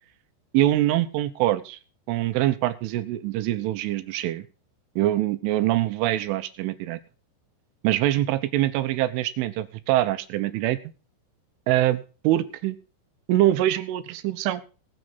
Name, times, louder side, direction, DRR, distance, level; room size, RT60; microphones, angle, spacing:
voice 1, 0.5-1.8 2.1-4.5 5.0-7.0 7.8-10.8 11.7-12.8 13.3-14.6, right 14 dB, 80° right, 12 dB, 3.3 m, -24 dB
23.0 x 7.6 x 4.1 m, 0.35 s
omnidirectional pair, 5.9 m